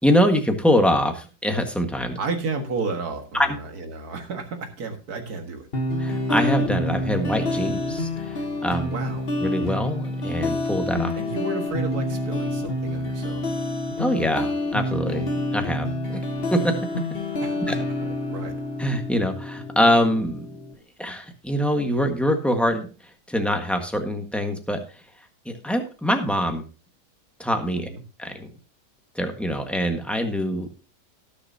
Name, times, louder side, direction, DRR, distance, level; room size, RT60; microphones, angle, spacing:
voice 1, 0.0-2.2 3.3-3.5 6.0-8.9 9.4-11.1 14.0-15.2 15.5-16.2 16.5-16.7 17.7-17.8 18.8-20.4 21.0-22.9 23.3-24.8 25.4-26.7 27.4-27.9 28.2-28.5 29.1-30.7, equal, ahead, 4 dB, 1.4 m, -24 dB
voice 2, 2.2-5.7 8.8-9.3 11.1-13.4 17.4-17.7 18.0-18.6 27.7-28.0, right 3 dB, 65° right, 5 dB, 2.2 m, -32 dB
sound 1, 5.7-20.7, left 1 dB, 40° left, 1.5 m, -28 dB
18.0 x 7.0 x 2.8 m, 0.33 s
omnidirectional pair, 1.7 m